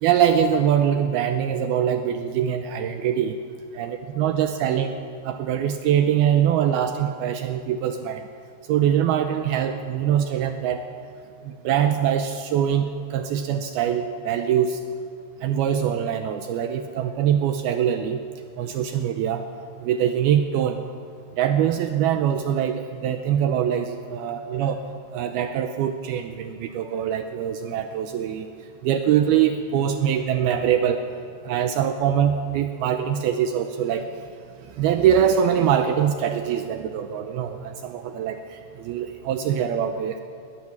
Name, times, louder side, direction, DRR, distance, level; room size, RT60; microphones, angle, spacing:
voice 1, 0.0-3.3 3.7-4.9 5.3-8.2 8.7-10.8 11.7-14.8 15.4-18.2 18.6-19.4 19.8-20.8 21.4-24.8 25.1-28.5 28.8-31.0 31.5-34.1 34.8-38.4 38.8-40.2, right 9 dB, 80° right, 7 dB, 2.2 m, -23 dB
20.0 x 18.0 x 7.3 m, 2.3 s
omnidirectional pair, 5.3 m